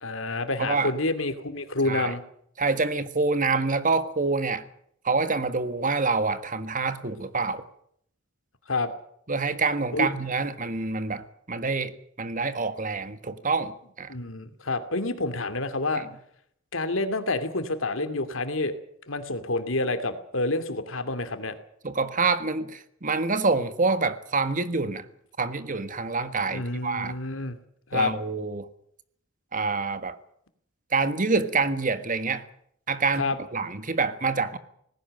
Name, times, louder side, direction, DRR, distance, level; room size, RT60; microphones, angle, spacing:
voice 1, 0.0-2.2 8.7-8.9 9.9-10.1 14.1-16.0 16.7-18.7 19.1-21.5 26.5-27.6 27.9-28.1 33.2-33.4, left 2 dB, 70° left, 10 dB, 2.5 m, -28 dB
voice 2, 0.6-0.9 1.8-2.1 2.6-4.6 5.0-7.6 9.3-14.1 16.0-16.1 21.8-25.0 25.4-27.1 27.9-28.7 29.5-30.1 30.9-32.4 32.9-34.6, right 4 dB, 40° right, 12 dB, 1.6 m, -26 dB
19.0 x 16.5 x 8.9 m, 0.68 s
head